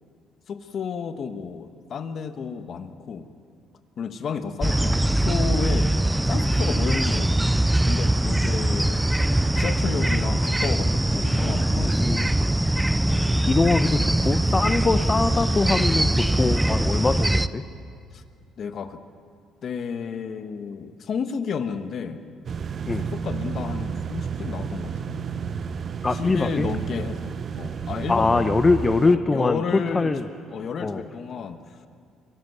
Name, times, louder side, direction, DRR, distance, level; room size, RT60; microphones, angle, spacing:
voice 1, 0.5-3.3 4.0-9.1 9.6-12.2 13.0-13.4 18.1-18.2 18.6-19.0 19.6-22.2 23.1-25.2 26.1-28.6 29.0-30.2 30.5-31.8, left 6 dB, 50° left, 9 dB, 1.2 m, -32 dB
sound 1, 4.6-17.5, right 1 dB, 5° right, 0.5 m, -22 dB
voice 2, 12.0-12.5 13.5-17.6 22.9-23.1 26.0-26.7 28.1-30.3 30.8-31.0, left 3 dB, 20° left, 9 dB, 0.8 m, -23 dB
sound 2, 22.5-29.2, right 6 dB, 45° right, 0.7 m, -31 dB
23.5 x 13.0 x 9.4 m, 2.3 s
cardioid pair, 105°, 0 cm